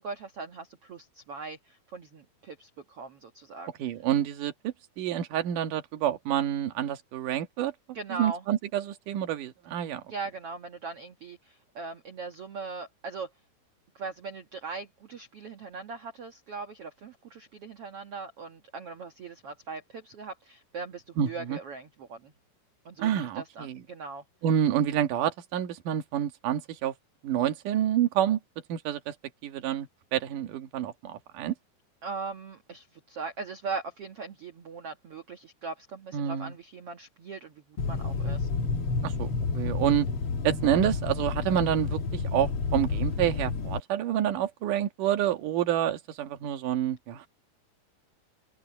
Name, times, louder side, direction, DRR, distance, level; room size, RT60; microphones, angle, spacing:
voice 1, 0.0-3.7 7.9-8.4 10.1-13.3 13.9-22.3 22.8-24.2 32.0-38.5, right 4 dB, 85° right, 1.3 m, -40 dB
voice 2, 3.8-7.7 8.1-10.0 21.2-21.6 23.0-23.8 24.4-26.9 27.2-28.4 28.7-29.1 29.4-31.5 36.1-36.5 39.0-40.1 40.4-47.3, right 10 dB, 60° right, 2.7 m, -28 dB
sound 1, 37.8-43.8, left 4 dB, 60° left, 1.5 m, -30 dB
open air
omnidirectional pair, 4.9 m